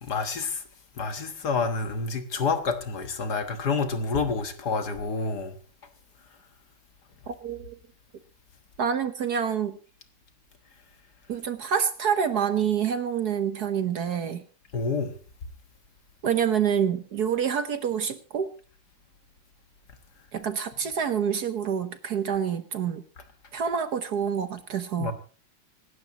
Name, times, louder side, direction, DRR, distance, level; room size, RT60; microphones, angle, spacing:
voice 1, 0.1-0.6 1.0-5.6 14.7-15.1 25.0-25.1, left 4 dB, 50° left, 1.8 m, -28 dB
voice 2, 7.3-7.8 8.8-9.8 11.3-14.4 16.2-18.5 20.3-23.0 23.5-25.1, right 7 dB, 55° right, 1.3 m, -27 dB
26.0 x 12.0 x 3.0 m
omnidirectional pair, 2.4 m